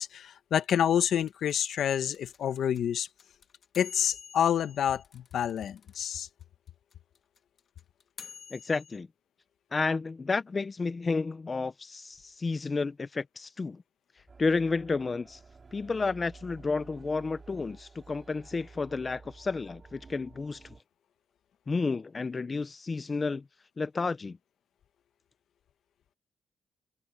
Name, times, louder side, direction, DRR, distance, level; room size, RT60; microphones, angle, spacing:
voice 1, 0.0-3.1 3.7-6.3, left 9 dB, 65° left, 1.1 m, -28 dB
sound 1, 1.0-6.1 6.4-6.5 6.7-9.0, left 7 dB, 50° left, 1.7 m, -48 dB
voice 2, 8.5-9.1 9.7-13.8 14.4-15.4 15.7-20.6 21.7-23.4 23.8-24.4, left 4 dB, 25° left, 0.5 m, -31 dB
sound 2, 14.3-20.8, right 4 dB, 30° right, 4.5 m, -52 dB
cardioid pair, 140°, 0 cm